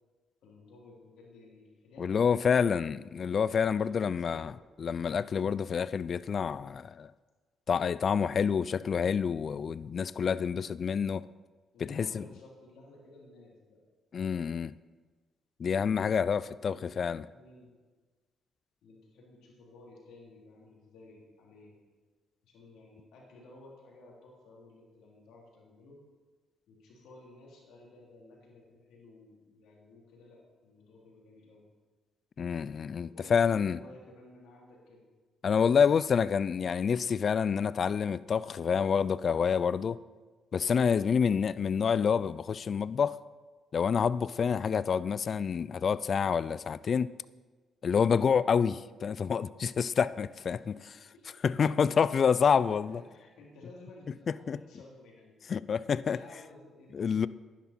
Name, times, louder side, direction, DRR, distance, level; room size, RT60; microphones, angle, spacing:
voice 1, 0.4-2.9 3.6-4.6 11.7-13.9 15.7-17.8 18.8-21.8 22.4-26.0 26.7-31.7 33.0-35.0 50.7-51.4 52.5-55.6 56.1-57.3, left 2 dB, 85° left, -2 dB, 3.2 m, -54 dB
voice 2, 2.0-4.5 4.8-7.1 7.7-11.2 11.8-12.2 14.1-14.7 15.6-17.2 32.4-33.8 35.4-40.0 40.5-43.2 43.7-47.1 47.8-50.7 51.4-53.0 54.5-54.6 55.5-56.2 56.9-57.3, left 6 dB, 50° left, 17 dB, 0.3 m, -28 dB
11.0 x 10.0 x 4.3 m, 1.3 s
cardioid pair, 90°, 0 cm